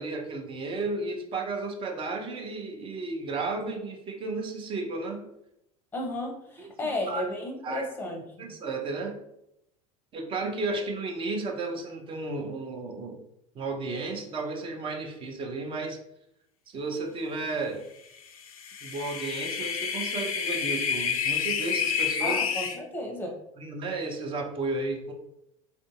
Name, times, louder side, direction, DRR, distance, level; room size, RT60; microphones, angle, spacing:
voice 1, 0.0-5.3 6.6-7.2 7.6-7.9 8.4-9.2 10.1-13.2 13.5-16.0 16.7-17.8 18.8-22.4 23.6-25.1, right 3 dB, 30° right, 3 dB, 0.6 m, -33 dB
voice 2, 5.9-8.5 22.2-23.4, left 1 dB, 10° left, 1 dB, 0.8 m, -33 dB
sound 1, 18.5-22.8, left 7 dB, 70° left, 0.4 m, -29 dB
3.4 x 2.6 x 2.3 m, 0.81 s
figure-of-eight pair, 80°, 19 cm